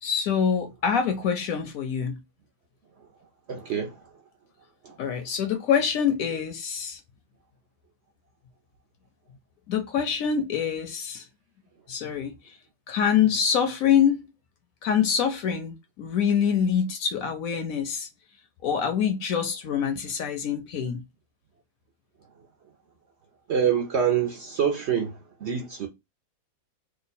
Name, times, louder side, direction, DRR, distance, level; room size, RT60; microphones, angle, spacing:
voice 1, 0.0-2.2 5.0-7.0 9.7-11.3 11.9-12.6 12.9-14.3 14.8-18.1 18.6-21.0, left 7 dB, 70° left, 0.9 m, -25 dB
voice 2, 3.5-4.0 4.8-5.0 23.5-25.9, right 8 dB, 60° right, 0.7 m, -26 dB
3.0 x 2.2 x 4.1 m
omnidirectional pair, 1.7 m